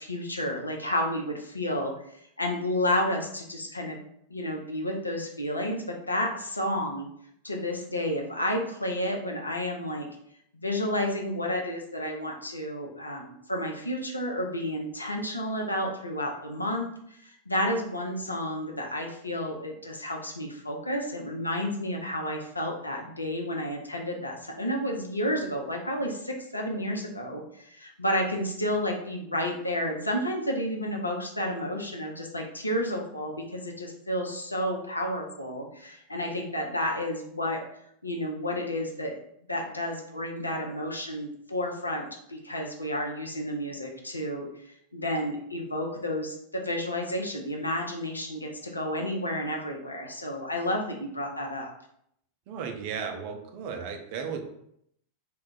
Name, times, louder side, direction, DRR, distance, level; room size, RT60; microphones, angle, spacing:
voice 1, 0.0-1.9 2.4-4.0 4.3-7.1 7.4-10.1 10.5-37.7 38.0-39.2 39.5-44.5 44.9-51.7, left 1 dB, 85° left, 1 dB, 0.5 m, -31 dB
voice 2, 52.5-54.4, right 6 dB, 45° right, 4 dB, 0.4 m, -35 dB
2.2 x 2.0 x 3.8 m, 0.73 s
figure-of-eight pair, 90°, 0 cm